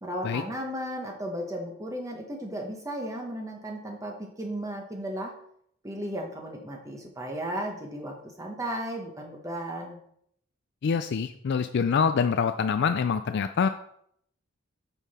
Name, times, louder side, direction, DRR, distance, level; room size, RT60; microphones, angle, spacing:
voice 1, 0.0-5.3 5.8-10.0, right 1 dB, 15° right, 1 dB, 1.0 m, -35 dB
voice 2, 10.8-13.7, left 6 dB, 55° left, 9 dB, 0.4 m, -25 dB
8.1 x 5.7 x 4.2 m, 0.69 s
head